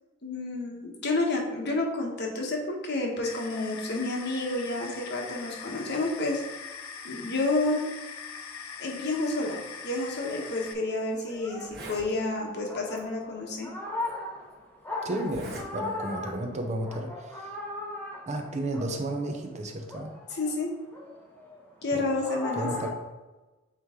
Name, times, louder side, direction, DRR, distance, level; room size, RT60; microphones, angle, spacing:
voice 1, 0.2-6.4 7.0-7.9 8.8-13.7 20.3-20.7 21.8-22.7, left 2 dB, 55° left, 1 dB, 1.2 m, -30 dB
sound 1, 3.2-10.7, left 6 dB, 75° left, 0.6 m, -42 dB
sound 2, 9.4-19.5 19.9-22.9, left 2 dB, 10° left, 0.9 m, -39 dB
Zipper (clothing), 10.5-10.7 11.2-11.3 11.5-12.1 12.9-13.0 14.0-14.1 15.2-15.7 16.0-16.3, right 1 dB, 50° right, 2.1 m, -42 dB
voice 2, 15.0-17.5 18.3-20.1 21.9-22.1 22.5-22.9, right 1 dB, 35° right, 3 dB, 0.7 m, -33 dB
8.3 x 3.2 x 3.7 m, 1.1 s
head